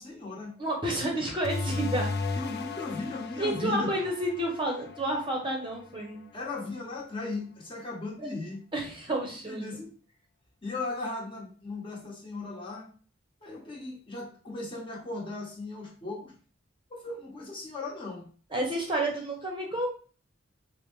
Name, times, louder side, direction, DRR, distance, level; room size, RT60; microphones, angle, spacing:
voice 1, 0.0-0.6 2.4-3.9 6.3-8.6 9.5-9.9 10.6-12.9 13.4-16.3 16.9-18.3, left 3 dB, 25° left, -3 dB, 1.2 m, -37 dB
voice 2, 0.6-2.1 3.4-6.2 8.2-8.3 8.7-9.8 18.5-19.9, right 1 dB, 25° right, 0 dB, 0.8 m, -30 dB
sound 1, 1.4-6.6, left 3 dB, 55° left, 0.4 m, -36 dB
4.8 x 2.1 x 3.1 m, 0.40 s
head